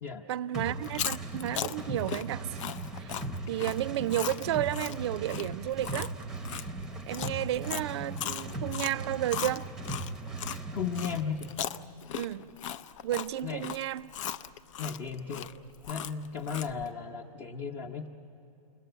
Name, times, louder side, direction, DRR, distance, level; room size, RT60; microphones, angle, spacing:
voice 1, 0.3-2.6 3.0-3.2 3.5-6.1 7.1-9.7 12.2-12.5 13.0-14.1, right 13 dB, 45° right, 0.5 m, -32 dB
sound 1, 0.5-11.3, right 2 dB, 5° right, 0.8 m, -38 dB
Chewing mastication, 0.8-10.6 10.9-16.9, left 10 dB, 55° left, 0.6 m, -38 dB
voice 2, 10.7-11.5 13.4-13.7 14.8-15.5 15.9-18.1, left 6 dB, 30° left, 0.9 m, -35 dB
28.5 x 21.0 x 8.0 m
hypercardioid pair, 155°, 20 cm